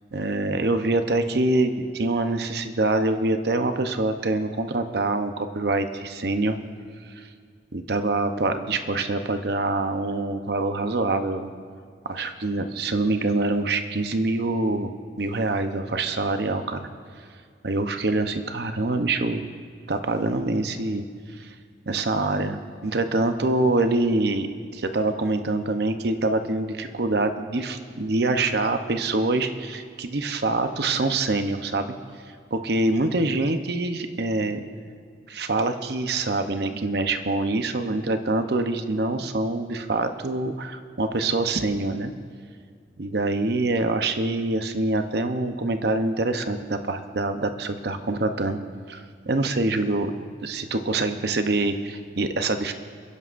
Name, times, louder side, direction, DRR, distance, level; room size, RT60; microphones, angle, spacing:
voice 1, 0.1-6.6 7.2-7.3 7.7-11.5 12.0-16.8 17.6-19.5 19.9-21.0 21.4-21.5 21.9-24.5 24.7-31.9 32.5-34.6 35.3-42.1 43.0-48.6 48.9-50.1 50.4-52.7, right 2 dB, 60° right, 8 dB, 0.8 m, -25 dB
29.0 x 11.0 x 2.5 m, 2.2 s
head